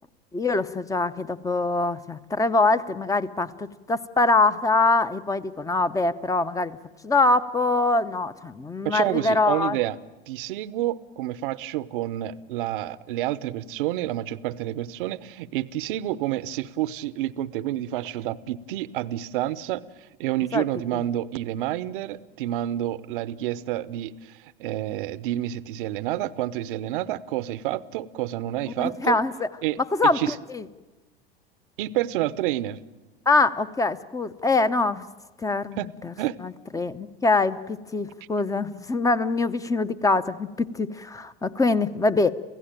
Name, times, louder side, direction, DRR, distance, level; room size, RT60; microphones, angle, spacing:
voice 1, 0.3-6.8 7.0-9.8 20.5-20.6 28.8-29.5 30.0-30.2 30.5-30.6 33.3-35.0 35.4-35.8 36.0-36.1 36.4-42.3, left 3 dB, 10° left, 13 dB, 0.9 m, -23 dB
voice 2, 8.8-10.0 10.3-19.8 20.2-24.3 24.6-29.2 29.6-29.8 30.1-30.4 31.8-32.8 35.8-35.9 36.2-36.4, right 14 dB, 60° right, 18 dB, 0.9 m, -29 dB
29.0 x 16.0 x 9.0 m, 1.2 s
figure-of-eight pair, 85°, 29 cm